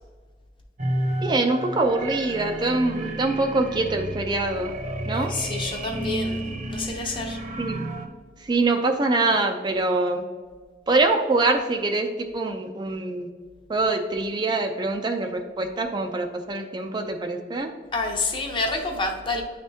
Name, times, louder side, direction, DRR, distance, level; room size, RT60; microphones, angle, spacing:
sound 1, 0.8-8.1, right 1 dB, 45° right, 0.8 m, -31 dB
voice 1, 1.2-4.7 5.1-5.3 7.6-7.9 8.5-10.2 10.9-12.1 12.3-13.3 13.7-17.7, right 2 dB, 25° right, 4 dB, 0.3 m, -24 dB
voice 2, 5.1-6.4 6.7-7.4 17.9-19.4, left 3 dB, 30° left, 2 dB, 0.7 m, -28 dB
10.0 x 3.4 x 2.7 m, 1.5 s
head